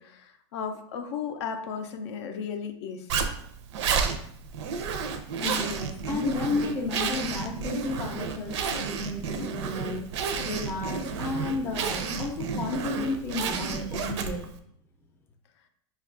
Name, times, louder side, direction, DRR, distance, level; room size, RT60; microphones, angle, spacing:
voice 1, 0.0-3.2, left 6 dB, 70° left, 6 dB, 0.4 m, -35 dB
Zipper (clothing), 3.1-14.6, right 6 dB, 75° right, 0.5 m, -31 dB
voice 2, 5.4-10.1 10.4-14.5, left 3 dB, 15° left, 2 dB, 0.4 m, -32 dB
5.1 x 2.3 x 2.4 m, 0.69 s
supercardioid pair, 140°, 15 cm